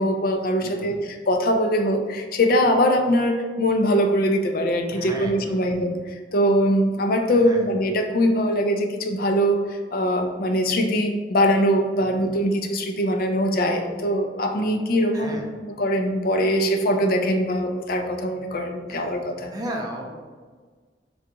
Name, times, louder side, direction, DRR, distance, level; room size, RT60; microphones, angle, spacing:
voice 1, 0.0-5.9 6.3-19.5, equal, 55° left, 5 dB, 0.5 m, -22 dB
voice 2, 0.6-1.0 4.9-5.7 7.4-7.6 12.0-12.2 15.1-15.5 18.9-19.1 19.5-20.1, right 1 dB, 20° right, 0 dB, 0.6 m, -35 dB
3.8 x 2.9 x 3.5 m, 1.5 s
head